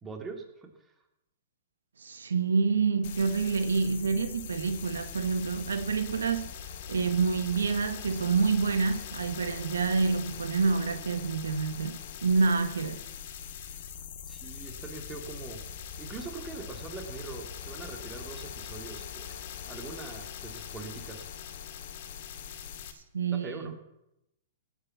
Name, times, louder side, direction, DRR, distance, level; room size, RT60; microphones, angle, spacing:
voice 1, 0.0-0.7 14.3-15.6 16.0-21.2 23.3-23.7, right 4 dB, 20° right, 2.7 m, -42 dB
voice 2, 2.0-6.5 6.9-13.0 23.1-23.7, right 4 dB, 85° right, 1.2 m, -27 dB
sound 1, 3.0-22.9, left 8 dB, 60° left, 2.1 m, -42 dB
18.0 x 7.9 x 7.1 m
hypercardioid pair, 125°, 0 cm